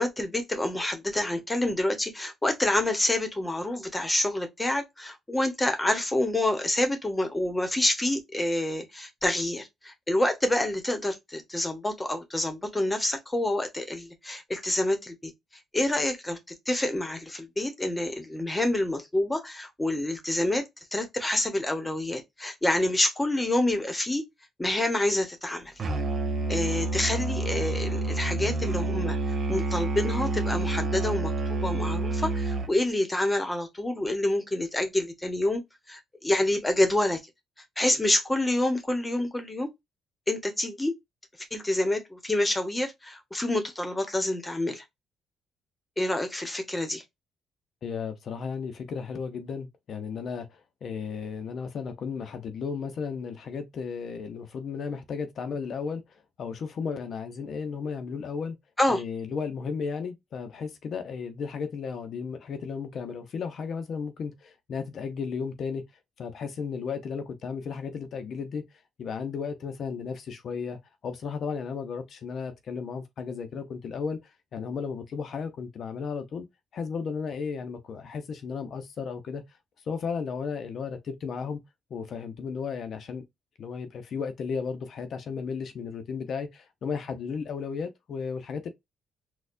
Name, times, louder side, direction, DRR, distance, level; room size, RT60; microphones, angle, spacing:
voice 1, 0.0-15.3 15.7-16.4 16.7-20.6 20.9-24.2 24.6-25.7 26.5-35.6 35.9-37.2 37.8-39.7 40.3-40.9 41.5-44.8 46.0-47.0 58.8-59.0, left 1 dB, 15° left, 1.1 m, -27 dB
Musical instrument, 25.8-32.8, right 2 dB, 45° right, 0.9 m, -28 dB
voice 2, 47.8-58.6 58.9-65.8 66.2-68.7 69.0-74.2 74.5-76.5 76.7-79.4 79.9-81.6 81.9-83.3 83.6-88.7, left 5 dB, 60° left, 0.7 m, -34 dB
4.2 x 2.3 x 2.5 m
cardioid pair, 90°, 0 cm